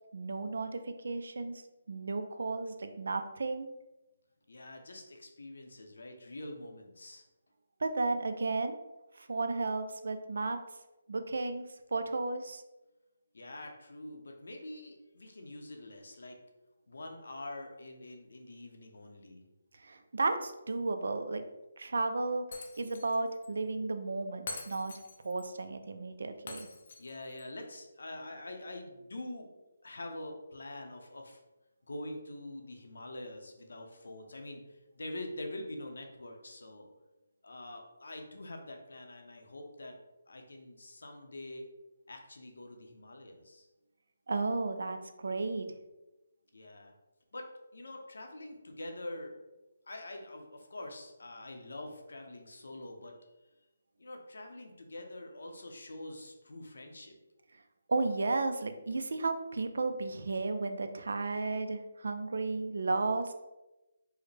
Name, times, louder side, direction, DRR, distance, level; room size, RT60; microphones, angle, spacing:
voice 1, 0.1-1.6 1.9-3.7 7.8-8.8 9.1-10.6 11.1-11.7 11.9-12.6 19.7-21.4 21.8-22.4 22.8-24.9 25.2-26.7 44.3-45.7 57.9-63.3, right 3 dB, 70° right, 8 dB, 0.4 m, -33 dB
voice 2, 4.5-7.2 13.3-16.4 16.9-19.4 27.0-29.5 29.8-31.4 31.9-36.9 37.4-40.0 40.3-41.6 42.1-43.7 46.5-46.9 47.3-49.4 49.9-53.1 54.0-57.1, left 1 dB, 80° left, 3 dB, 0.7 m, -45 dB
Shatter, 22.5-23.2 23.4-23.5 24.5-25.5 26.5-27.4, left 3 dB, 40° left, 0.4 m, -45 dB
4.7 x 2.1 x 3.3 m, 1.0 s
hypercardioid pair, 170°, 0 cm